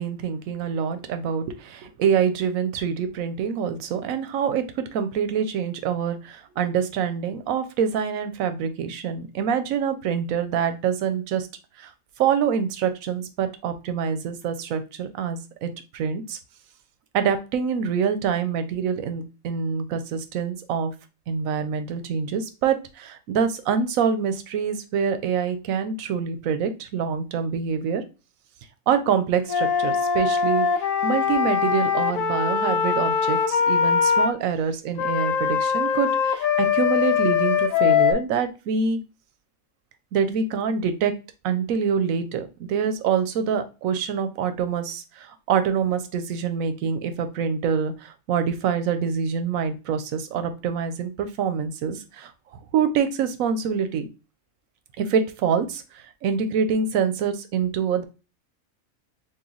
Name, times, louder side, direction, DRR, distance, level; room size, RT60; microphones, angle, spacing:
voice 1, 0.0-11.5 11.8-11.9 12.2-16.4 17.1-20.9 21.3-28.0 28.9-39.0 40.1-41.1 41.4-54.1 55.0-58.0, right 7 dB, 85° right, 9 dB, 1.0 m, -25 dB
Wind instrument woodwind instrument, 29.5-34.3 35.0-38.1, left 7 dB, 80° left, 1.0 m, -22 dB
3.1 x 2.5 x 3.8 m, 0.30 s
omnidirectional pair, 1.4 m